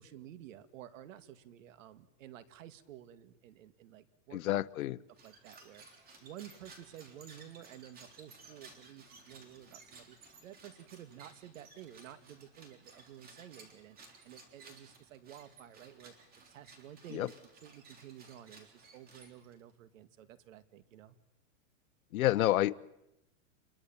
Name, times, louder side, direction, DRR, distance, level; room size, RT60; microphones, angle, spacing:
voice 1, 0.0-4.9 5.2-16.1 16.4-17.3 17.6-21.2, right 11 dB, 65° right, 13 dB, 2.0 m, -52 dB
voice 2, 4.3-5.0 17.1-17.3 22.1-22.7, left 15 dB, 85° left, 19 dB, 0.9 m, -29 dB
sound 1, 5.1-19.7, right 3 dB, 20° right, 3.7 m, -57 dB
27.5 x 21.5 x 7.3 m, 0.90 s
supercardioid pair, 155°, 41 cm